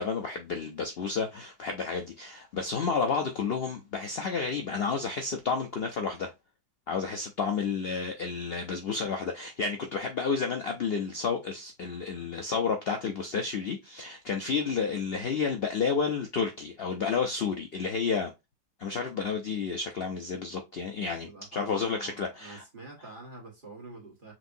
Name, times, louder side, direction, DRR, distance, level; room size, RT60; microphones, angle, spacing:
voice 1, 0.0-6.3 6.9-18.3 18.8-22.6, left 5 dB, 80° left, 0.5 m, -31 dB
voice 2, 20.9-24.3, right 2 dB, 30° right, 1.6 m, -47 dB
6.1 x 2.6 x 2.6 m
omnidirectional pair, 1.8 m